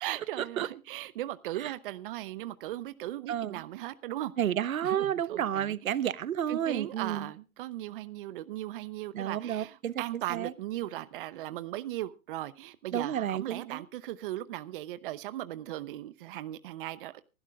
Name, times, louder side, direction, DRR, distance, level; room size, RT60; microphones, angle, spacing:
voice 1, 0.0-4.3 4.8-5.8 6.5-17.2, right 14 dB, 40° right, 0.8 m, -38 dB
voice 2, 3.3-3.6 4.4-7.3 9.1-9.9 10.3-10.5 12.9-13.8, right 10 dB, 75° right, 1.1 m, -31 dB
24.0 x 12.0 x 2.4 m
hypercardioid pair, 145°, 41 cm